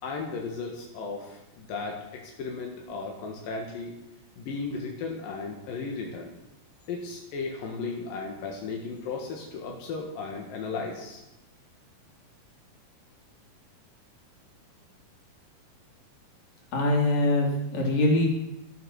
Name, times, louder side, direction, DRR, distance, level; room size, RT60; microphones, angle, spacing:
voice 1, 0.0-3.9 4.4-6.3 6.9-11.2, left 4 dB, 85° left, 0 dB, 3.4 m, -35 dB
voice 2, 16.7-18.3, left 1 dB, 55° left, -1 dB, 4.6 m, -23 dB
13.0 x 11.0 x 6.4 m, 0.91 s
omnidirectional pair, 3.9 m